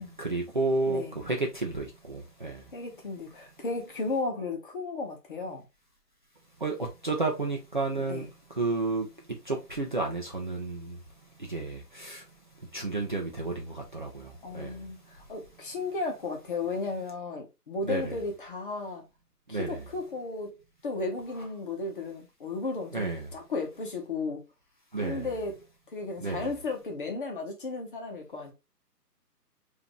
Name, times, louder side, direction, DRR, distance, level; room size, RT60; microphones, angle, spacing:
voice 1, 0.0-2.6 6.6-8.3 8.6-9.1 9.4-11.0 11.4-12.2 12.7-14.9 17.8-18.2 19.5-19.8 22.9-23.3 24.9-25.3 26.2-26.5, right 3 dB, 30° right, 0.6 m, -31 dB
voice 2, 0.9-1.2 2.7-5.6 7.9-8.3 14.4-19.1 19.5-20.6 20.8-24.4 24.9-25.7 25.9-28.5, left 3 dB, 30° left, 1.0 m, -34 dB
4.9 x 2.8 x 3.0 m
hypercardioid pair, 160°, 49 cm